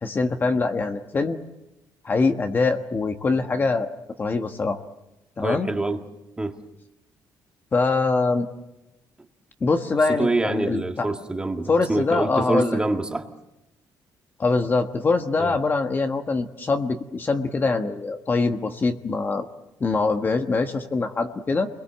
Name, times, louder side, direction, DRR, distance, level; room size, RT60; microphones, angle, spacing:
voice 1, 0.0-1.4 2.0-3.9 4.2-4.8 5.4-5.7 7.7-8.5 9.6-11.1 11.7-12.8 14.4-19.5 19.8-21.7, left 3 dB, 30° left, 6 dB, 1.4 m, -23 dB
voice 2, 5.4-6.0 6.4-6.6 10.1-13.3 15.4-15.6, right 2 dB, 10° right, 5 dB, 1.8 m, -26 dB
29.0 x 22.0 x 7.4 m, 0.95 s
cardioid pair, 135°, 7 cm